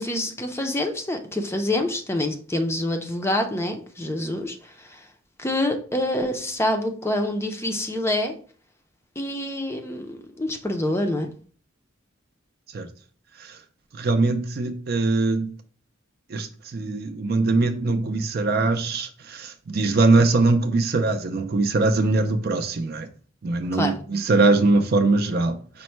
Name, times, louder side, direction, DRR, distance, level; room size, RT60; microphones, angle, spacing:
voice 1, 0.0-5.0 5.4-8.3 9.2-11.3 23.7-24.0, left 1 dB, 15° left, 0.5 m, -26 dB
voice 2, 13.9-15.5 16.3-23.1 23.4-25.8, right 3 dB, 50° right, 0.4 m, -22 dB
5.3 x 2.1 x 4.4 m
head